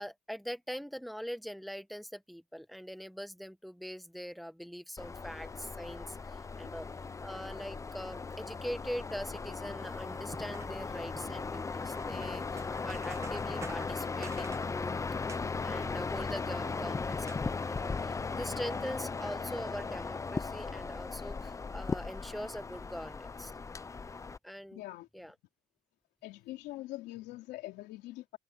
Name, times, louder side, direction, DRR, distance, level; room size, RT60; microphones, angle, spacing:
voice 1, 0.0-6.9 7.2-14.9 15.6-23.5 24.4-24.8 25.1-25.3, equal, ahead, 1.3 m, -42 dB
sound 1, 5.0-24.4, left 4 dB, 20° left, 0.6 m, -37 dB
sound 2, 9.8-17.8, right 3 dB, 15° right, 1.1 m, -52 dB
voice 2, 24.7-25.3 26.2-28.4, left 17 dB, 90° left, 3.2 m, -44 dB
cardioid pair, 110°, 17 cm